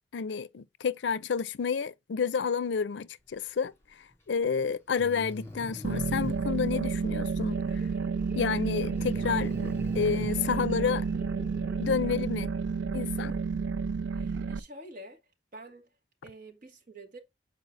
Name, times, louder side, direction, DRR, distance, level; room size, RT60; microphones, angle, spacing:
voice 1, 0.1-3.7 4.3-7.6 8.4-11.0 11.8-12.5 12.9-13.3, left 6 dB, 75° left, 0.4 m, -30 dB
Breathing, 4.1-4.2 5.0-6.5 8.9-10.4, left 1 dB, 15° left, 2.9 m, -41 dB
sound 1, 5.8-14.6, right 5 dB, 85° right, 0.4 m, -31 dB
sound 2, 7.5-13.2, equal, 10° right, 0.6 m, -49 dB
voice 2, 13.1-13.5 14.1-15.2 15.5-15.9 16.2-17.2, right 1 dB, 50° right, 2.4 m, -48 dB
8.2 x 4.6 x 3.9 m
head